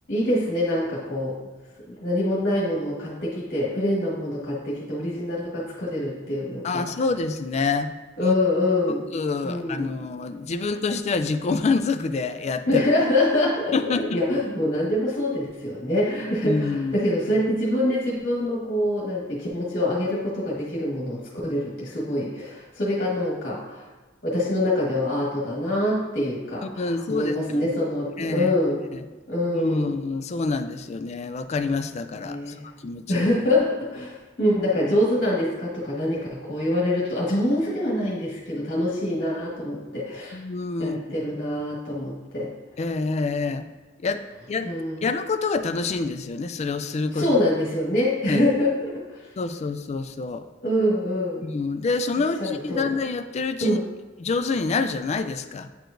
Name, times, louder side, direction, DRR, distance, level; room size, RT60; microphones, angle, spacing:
voice 1, 0.1-1.4 1.9-7.0 8.2-9.1 9.4-9.9 12.7-23.9 24.2-28.8 29.3-29.9 32.2-32.6 33.1-40.4 40.8-42.5 44.6-45.0 47.1-49.3 50.6-51.5 52.4-52.8 53.6-53.8, left 1 dB, 50° left, -6 dB, 1.5 m, -25 dB
voice 2, 6.6-7.9 8.2-8.3 9.1-12.8 13.7-14.2 16.4-17.1 26.6-27.7 28.2-28.5 28.9-29.0 29.5-32.5 32.8-33.3 40.3-41.0 42.8-43.7 44.0-44.7 45.0-47.3 48.3-48.4 49.4-50.4 51.4-53.8 54.2-55.7, left 4 dB, 35° left, 9 dB, 0.3 m, -27 dB
8.9 x 4.8 x 2.6 m, 1.2 s
head